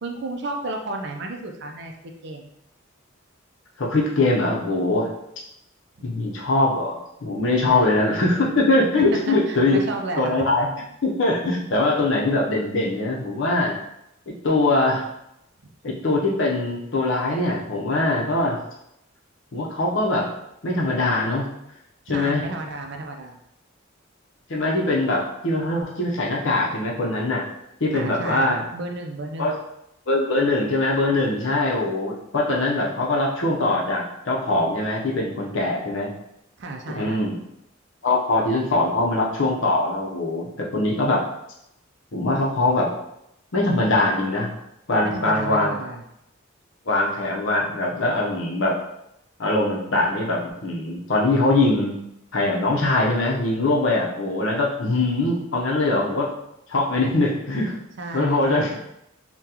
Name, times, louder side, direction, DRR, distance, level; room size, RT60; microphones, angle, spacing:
voice 1, 0.0-2.5 7.6-7.9 9.3-10.4 22.1-23.4 27.9-29.6 36.6-37.3 45.0-46.0 58.0-58.8, right 2 dB, 55° right, 3 dB, 0.4 m, -32 dB
voice 2, 3.8-5.1 6.0-9.8 10.2-10.7 11.0-13.8 14.4-15.0 15.8-18.6 19.5-20.3 20.6-21.5 22.1-22.4 24.5-27.5 27.8-28.6 29.4-29.5 30.1-36.1 36.9-37.4 38.0-41.2 42.1-42.9 43.5-44.5 44.9-45.7 46.9-48.8 49.4-51.9 52.3-56.3 56.7-57.7 58.1-58.7, left 2 dB, 65° left, -2 dB, 0.7 m, -22 dB
3.7 x 2.2 x 2.8 m, 0.80 s
head